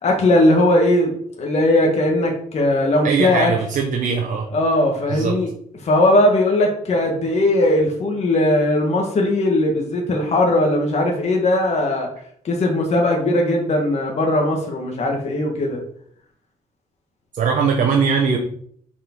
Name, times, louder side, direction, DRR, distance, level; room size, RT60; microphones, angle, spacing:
voice 1, 0.0-3.5 4.5-5.5 5.8-12.1 12.4-15.8, left 1 dB, 50° left, 1 dB, 1.4 m, -18 dB
voice 2, 3.0-4.5 5.1-5.3 17.3-18.4, right 6 dB, 65° right, 1 dB, 0.9 m, -20 dB
5.8 x 4.8 x 4.4 m, 0.63 s
cardioid pair, 115°, 14 cm